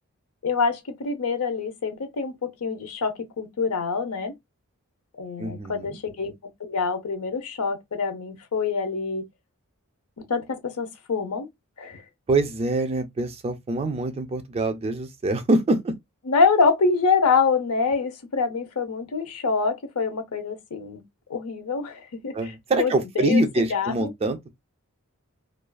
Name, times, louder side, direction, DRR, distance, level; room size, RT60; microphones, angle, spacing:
voice 1, 0.4-4.3 5.1-6.3 6.6-9.3 10.3-11.5 11.8-12.0 16.3-21.0 21.3-24.1, left 4 dB, 75° left, 0.6 m, -25 dB
voice 2, 5.4-6.0 12.3-15.9 22.3-24.4, right 2 dB, 25° right, 0.3 m, -24 dB
2.4 x 2.3 x 2.2 m
head